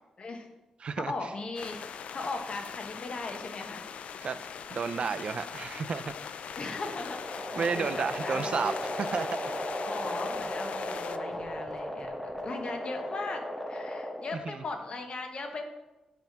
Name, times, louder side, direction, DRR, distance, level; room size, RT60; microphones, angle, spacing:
voice 1, 0.2-0.5 1.1-1.8 2.1-3.9 6.6-8.7 9.8-12.1 12.4-13.4 13.7-15.6, left 3 dB, 55° left, 4 dB, 1.1 m, -38 dB
voice 2, 0.8-1.1 4.2-4.4 4.7-6.1 7.6-8.8 9.1-9.3 14.5-14.6, right 5 dB, 55° right, 12 dB, 0.4 m, -31 dB
sound 1, 1.6-11.2, left 7 dB, 75° left, 0.3 m, -41 dB
sound 2, 6.4-14.5, left 1 dB, 10° left, 1.0 m, -36 dB
8.0 x 3.4 x 5.8 m, 1.0 s
cardioid pair, 90°, 2 cm